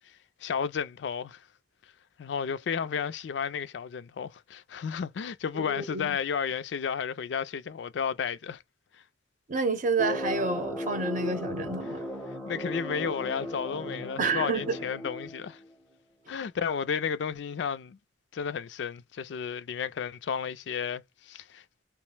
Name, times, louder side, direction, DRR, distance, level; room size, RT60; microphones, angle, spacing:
voice 1, 0.4-1.4 2.2-8.6 8.9-9.0 12.5-15.6 16.3-18.0 18.3-21.6, left 7 dB, 75° left, 0.4 m, -32 dB
voice 2, 5.5-6.2 9.5-12.0 14.2-14.8, right 3 dB, 45° right, 0.7 m, -29 dB
sound 1, 10.0-15.7, equal, 5° left, 0.6 m, -36 dB
2.9 x 2.0 x 3.2 m
head